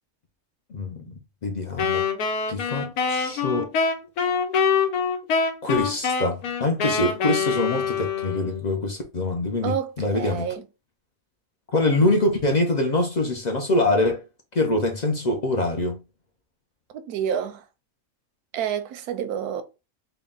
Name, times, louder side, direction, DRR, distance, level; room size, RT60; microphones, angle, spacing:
voice 1, 0.7-1.1 1.4-2.0 2.5-3.7 5.6-10.5 11.7-14.2 14.5-16.0, left 2 dB, 55° left, 0.4 m, -24 dB
Wind instrument woodwind instrument, 1.8-8.6, left 5 dB, 90° left, 1.2 m, -25 dB
voice 2, 9.6-10.7 16.9-17.6 18.5-19.6, right 8 dB, 90° right, 1.1 m, -29 dB
3.8 x 2.2 x 3.8 m
omnidirectional pair, 1.6 m